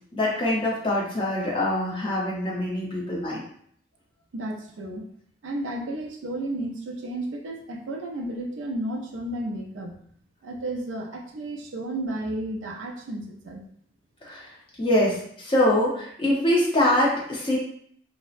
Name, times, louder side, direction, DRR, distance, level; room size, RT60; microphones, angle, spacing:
voice 1, 0.1-3.4 14.2-14.5 14.8-17.6, left 1 dB, 25° left, -4 dB, 0.6 m, -24 dB
voice 2, 4.3-5.1 5.4-10.0 10.4-13.6, right 1 dB, 85° right, 2 dB, 0.5 m, -32 dB
2.6 x 2.0 x 2.4 m, 0.64 s
head